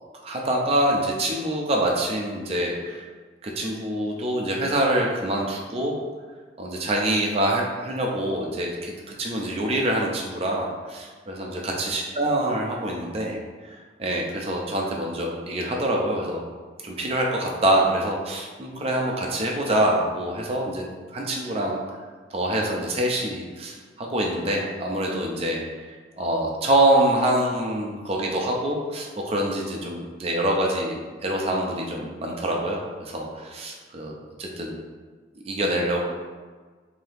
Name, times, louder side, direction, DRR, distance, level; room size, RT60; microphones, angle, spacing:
voice 1, 0.2-3.0 3.4-6.0 6.6-8.9 9.2-13.4 13.6-16.4 16.8-20.9 21.1-21.8 22.3-25.9 26.2-31.0 31.2-34.8 35.4-36.0, right 1 dB, 35° right, -1 dB, 0.5 m, -25 dB
2.7 x 2.7 x 3.4 m, 1.5 s
head